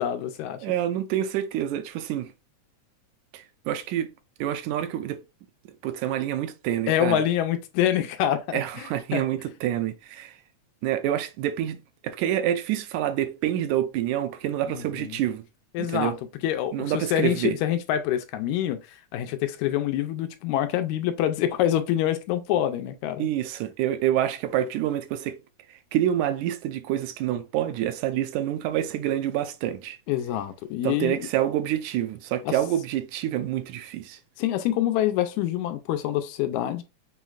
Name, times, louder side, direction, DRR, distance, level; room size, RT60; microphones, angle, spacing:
voice 1, 0.0-0.6 6.9-8.9 9.1-9.2 14.7-15.2 15.7-16.1 16.4-23.3 30.1-31.3 32.5-32.6 34.4-36.8, left 11 dB, 85° left, 1.9 m, -26 dB
voice 2, 0.6-2.3 3.3-4.1 4.4-5.2 5.8-7.2 8.5-10.4 10.8-11.8 12.0-15.5 15.8-16.2 16.7-17.6 23.2-25.4 25.7-30.0 30.8-34.2, right 11 dB, 85° right, 2.0 m, -27 dB
5.7 x 3.1 x 2.4 m
omnidirectional pair, 3.4 m